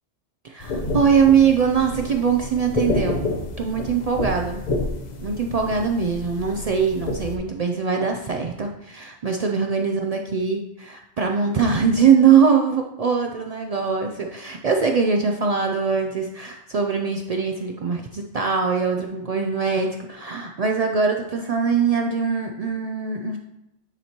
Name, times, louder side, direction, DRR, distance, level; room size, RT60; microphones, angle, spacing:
voice 1, 0.4-3.3 3.6-4.6 5.2-23.4, right 6 dB, 80° right, 2 dB, 0.3 m, -22 dB
sound 1, 0.6-7.4, left 2 dB, 45° left, 0.7 m, -29 dB
9.7 x 4.3 x 2.9 m, 0.88 s
omnidirectional pair, 1.2 m